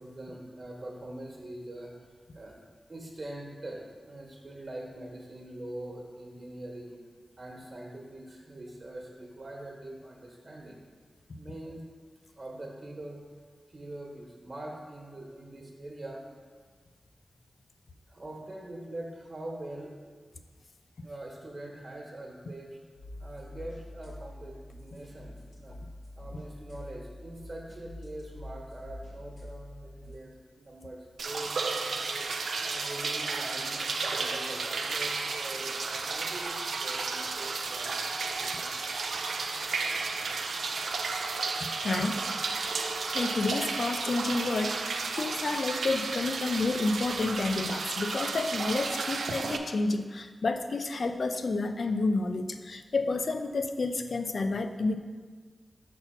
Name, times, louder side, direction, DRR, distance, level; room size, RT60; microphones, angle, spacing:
voice 1, 0.0-1.9 2.3-2.6 2.9-6.9 7.4-10.8 11.3-11.8 12.4-13.2 13.7-16.2 18.1-19.9 21.0-22.8 23.2-25.8 26.2-32.3 32.7-38.9 39.2-39.3, right 1 dB, 45° right, -1 dB, 1.3 m, -43 dB
sound 1, 22.9-30.2, left 1 dB, 80° left, 2.1 m, -46 dB
sound 2, 31.2-49.6, right 4 dB, 85° right, 0.4 m, -33 dB
voice 2, 41.8-42.2 43.1-55.0, left 3 dB, 60° left, 7 dB, 0.5 m, -30 dB
5.6 x 4.3 x 5.7 m, 1.5 s
cardioid pair, 65°, 0 cm